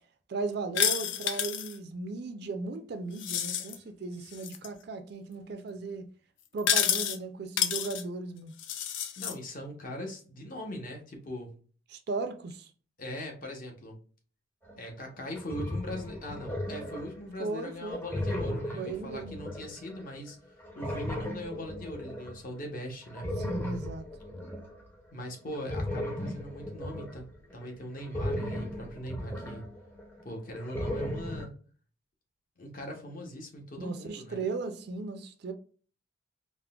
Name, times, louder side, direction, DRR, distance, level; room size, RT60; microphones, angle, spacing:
voice 1, 0.3-6.1 6.5-8.5 11.9-12.7 17.4-18.0 18.8-19.4 23.4-24.0 33.8-35.5, right 3 dB, 50° right, 0.4 m, -36 dB
sound 1, 0.8-1.8 3.2-3.8 4.3-4.7 6.6-7.2 7.6-8.0 8.6-9.3, left 9 dB, 65° left, 0.3 m, -29 dB
voice 2, 9.2-11.6 13.0-14.0 14.8-20.4 20.7-23.3 25.1-27.3 27.5-29.6 30.2-31.5 32.6-34.4, equal, 45° left, 0.7 m, -40 dB
sound 2, 14.7-14.8 15.2-17.2 17.6-20.3 20.6-22.4 23.0-24.9 25.5-30.2 30.5-31.4, left 1 dB, 10° left, 0.5 m, -36 dB
3.6 x 2.0 x 2.3 m
head